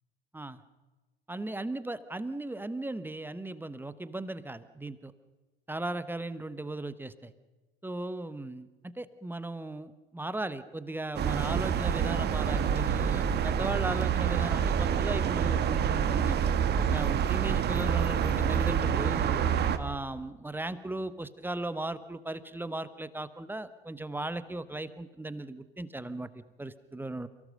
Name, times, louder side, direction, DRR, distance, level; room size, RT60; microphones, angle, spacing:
voice 1, 1.3-5.1 5.7-7.3 7.8-16.4 16.8-19.4 19.8-27.3, right 2 dB, 5° right, 14 dB, 1.1 m, -37 dB
sound 1, 11.2-19.8, right 8 dB, 35° right, 1.6 m, -27 dB
29.0 x 17.0 x 6.6 m, 1.2 s
figure-of-eight pair, 70°, 31 cm